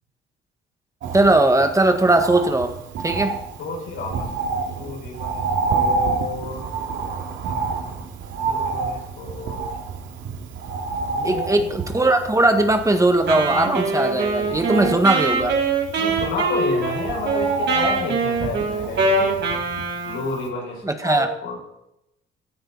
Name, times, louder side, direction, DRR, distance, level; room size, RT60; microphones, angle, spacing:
Bird, 1.0-20.1 20.5-20.6, right 4 dB, 80° right, 2.5 m, -29 dB
voice 1, 1.1-2.8 3.0-3.4 11.2-15.6 20.8-21.3, right 2 dB, 15° right, 7 dB, 1.7 m, -19 dB
voice 2, 3.6-6.6 7.5-7.6 8.4-9.6 11.1-11.7 16.0-19.4 20.0-21.6, left 3 dB, 85° left, -2 dB, 6.4 m, -31 dB
Wind instrument woodwind instrument, 13.3-20.4, right 3 dB, 65° right, 4.5 m, -23 dB
17.5 x 14.0 x 4.1 m, 0.86 s
cardioid pair, 90°, 20 cm